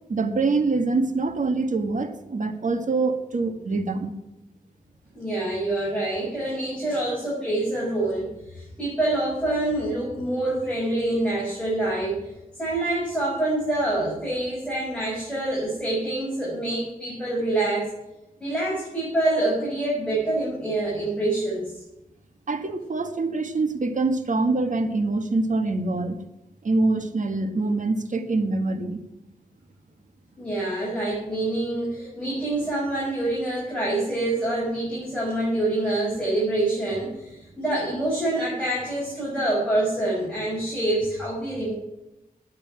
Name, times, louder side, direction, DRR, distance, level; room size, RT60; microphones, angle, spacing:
voice 1, 0.1-4.2 22.5-26.2 26.6-29.0, right 3 dB, 60° right, 7 dB, 1.7 m, -25 dB
voice 2, 5.1-12.3 12.6-17.9 18.4-21.8 30.4-41.7, right 1 dB, 5° left, -5 dB, 6.5 m, -26 dB
10.5 x 8.6 x 9.6 m, 0.95 s
cardioid pair, 65°, 15 cm